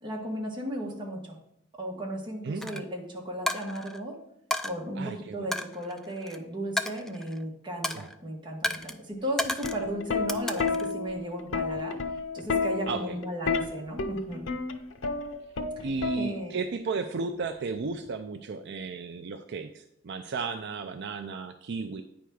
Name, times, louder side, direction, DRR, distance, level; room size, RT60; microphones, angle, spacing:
voice 1, 0.0-1.4 1.8-4.1 4.6-12.0 12.3-14.4 15.8-15.9 16.2-16.5, right 1 dB, 25° right, -1 dB, 1.5 m, -35 dB
voice 2, 2.4-2.8 5.0-5.5 7.9-8.0 12.9-13.2 15.8-22.0, right 4 dB, 60° right, 7 dB, 0.5 m, -34 dB
Coin (dropping), 2.6-2.8 3.5-4.0 4.5-4.7 5.5-6.4 6.8-7.4 7.8-8.2 8.6-9.0 9.4-9.8 10.3-10.9, left 1 dB, ahead, 0.4 m, -32 dB
Plucked string instrument, 9.4-16.7 17.7-18.1, left 4 dB, 90° left, 0.7 m, -31 dB
9.2 x 3.5 x 6.3 m, 0.75 s
head